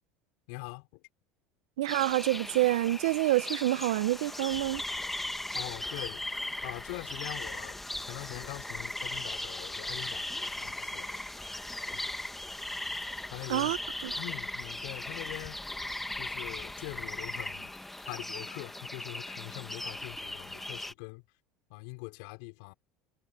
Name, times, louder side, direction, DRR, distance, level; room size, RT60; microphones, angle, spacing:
voice 1, 0.5-1.0 5.5-6.2 6.6-11.6 11.9-12.2 13.3-13.7 14.1-15.6 16.2-17.7 18.0-21.2 21.7-22.7, left 28 dB, 75° left, 5.6 m, -43 dB
voice 2, 1.8-4.8 13.5-13.8 14.0-14.1, right 17 dB, 90° right, 0.7 m, -27 dB
sound 1, 1.9-20.9, left 1 dB, 5° left, 1.3 m, -38 dB
supercardioid pair, 105°, 3 cm